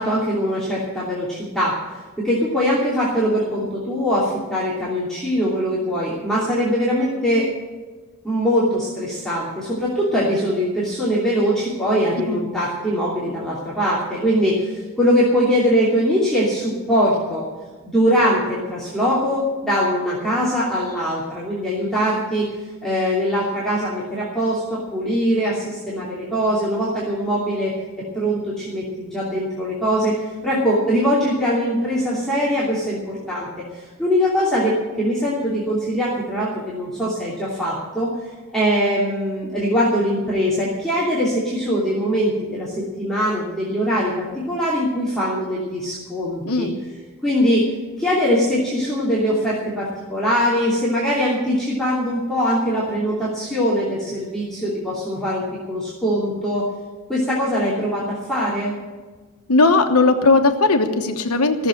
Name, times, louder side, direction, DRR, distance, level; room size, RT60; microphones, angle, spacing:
voice 1, 0.0-1.8 2.2-7.5 8.2-17.4 17.8-22.5 22.8-27.7 28.1-30.1 30.4-33.5 33.7-38.1 38.5-46.7 47.2-47.6 48.0-56.7 57.1-58.7, equal, ahead, -8 dB, 2.8 m, -22 dB
voice 2, 59.5-61.7, left 3 dB, 85° left, 6 dB, 1.2 m, -17 dB
16.0 x 7.1 x 9.8 m, 1.3 s
head